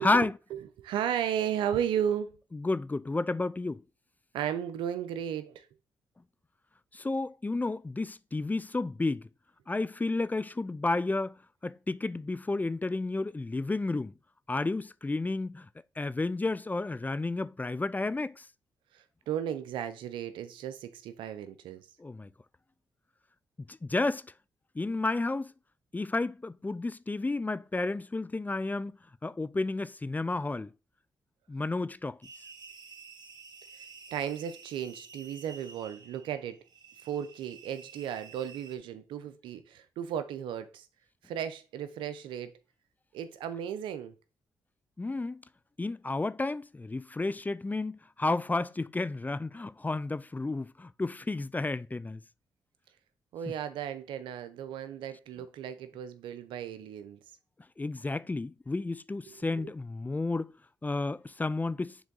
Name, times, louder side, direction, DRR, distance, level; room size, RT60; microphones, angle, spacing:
voice 1, 0.0-0.3 2.6-3.8 6.9-9.3 9.7-14.1 14.5-15.7 16.0-18.5 22.0-22.3 23.7-24.3 24.8-25.5 25.9-30.7 31.5-32.2 45.0-45.4 45.8-52.2 57.8-60.5 60.8-62.0, left 2 dB, 20° left, 0.4 m, -31 dB
voice 2, 0.5-2.4 4.3-5.7 18.9-21.9 33.7-33.9 34.1-36.6 37.0-40.9 41.2-42.6 43.1-44.1 53.3-57.2 59.3-59.7, right 9 dB, 80° right, 0.6 m, -35 dB
sound 1, 32.2-38.8, right 5 dB, 55° right, 1.4 m, -51 dB
7.0 x 3.6 x 3.9 m
supercardioid pair, 45°, 8 cm